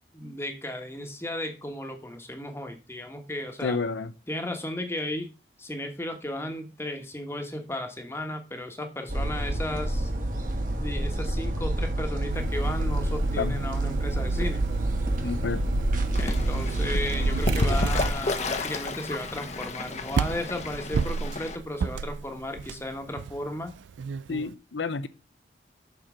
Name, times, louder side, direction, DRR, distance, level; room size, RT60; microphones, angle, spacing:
voice 1, 0.1-3.8 4.3-5.3 5.6-10.1 10.5-14.7 16.2-23.7, left 1 dB, 15° left, 1.1 m, -35 dB
voice 2, 3.6-4.1 13.4-13.6 15.2-15.6 24.3-25.1, left 4 dB, 85° left, 0.7 m, -29 dB
sound 1, 9.1-18.1, right 1 dB, 45° right, 1.4 m, -28 dB
sound 2, 12.3-24.6, right 6 dB, 85° right, 0.4 m, -34 dB
Fowl / Bird, 16.1-21.6, left 3 dB, 40° left, 0.8 m, -32 dB
6.9 x 4.4 x 6.2 m
head